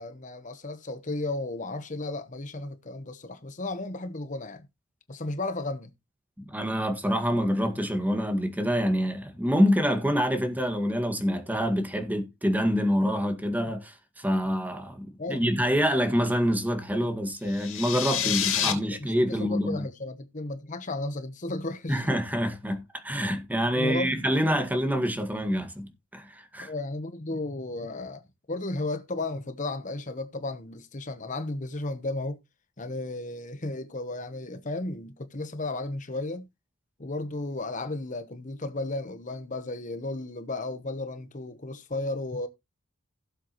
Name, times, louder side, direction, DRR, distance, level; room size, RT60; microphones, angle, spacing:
voice 1, 0.0-4.7 5.1-5.9 15.2-15.4 18.2-22.0 23.7-24.1 26.6-28.2 28.5-32.4 32.8-36.5 37.0-42.5, left 2 dB, 40° left, 1.0 m, -34 dB
voice 2, 6.4-19.9 21.9-26.7, equal, 10° right, 1.8 m, -26 dB
sound 1, 17.5-18.7, left 10 dB, 85° left, 3.7 m, -28 dB
16.5 x 7.6 x 3.0 m
head